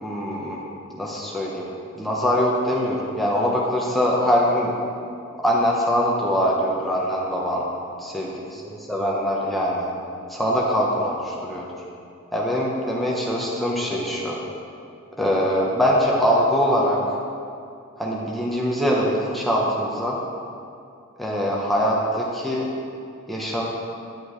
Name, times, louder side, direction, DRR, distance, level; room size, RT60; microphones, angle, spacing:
voice 1, 0.0-0.6 1.0-1.7 2.0-4.7 5.4-7.6 8.0-8.3 8.9-9.9 10.3-11.7 12.3-14.4 15.2-17.0 18.0-20.2 21.2-22.7 23.3-23.6, equal, ahead, -4 dB, 0.9 m, -23 dB
10.5 x 7.7 x 3.2 m, 2.5 s
head